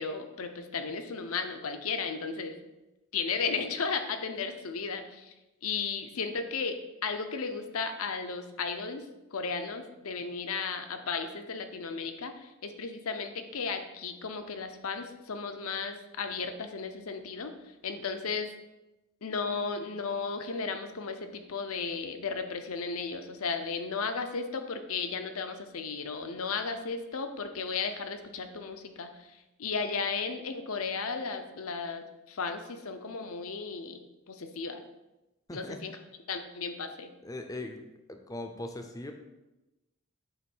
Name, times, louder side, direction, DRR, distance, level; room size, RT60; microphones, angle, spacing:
voice 1, 0.0-2.6 3.1-5.3 5.6-6.8 7.0-9.0 9.3-17.5 17.8-18.5 19.2-29.3 29.6-34.0 34.3-34.8 35.5-36.0 36.3-37.1, left 5 dB, 70° left, 7 dB, 0.7 m, -34 dB
voice 2, 37.2-37.8 38.1-39.1, left 2 dB, 15° left, 5 dB, 0.5 m, -39 dB
7.9 x 3.1 x 6.0 m, 1.0 s
head